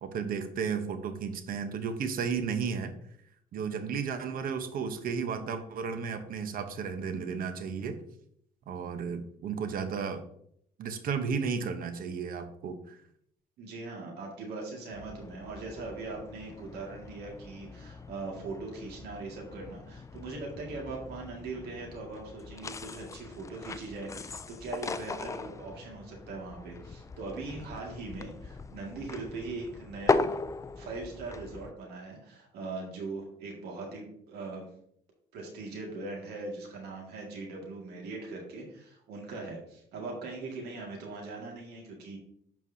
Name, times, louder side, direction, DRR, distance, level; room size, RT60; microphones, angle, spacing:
voice 1, 0.0-2.9 3.5-8.0 8.7-10.2 10.8-13.0, right 6 dB, 55° right, 8 dB, 1.0 m, -33 dB
voice 2, 13.6-30.3 30.8-34.7 35.3-42.2, right 3 dB, 75° right, 0 dB, 2.0 m, -40 dB
sound 1, 14.9-31.7, left 4 dB, 20° left, 0.3 m, -38 dB
11.0 x 4.7 x 2.7 m, 0.69 s
cardioid pair, 110°, 17 cm